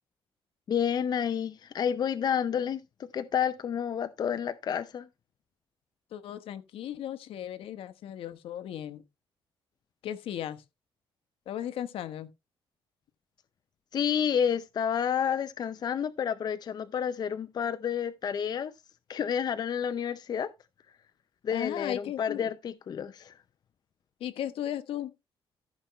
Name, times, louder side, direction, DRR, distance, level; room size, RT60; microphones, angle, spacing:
voice 1, 0.7-2.8 3.1-5.1 13.9-18.7 19.1-20.5 21.4-23.3, left 8 dB, 50° left, 0.6 m, -30 dB
voice 2, 6.1-9.0 10.0-10.6 11.5-12.3 21.5-22.5 24.2-25.1, left 11 dB, 80° left, 1.1 m, -36 dB
14.5 x 5.9 x 3.1 m
cardioid pair, 120°, 9 cm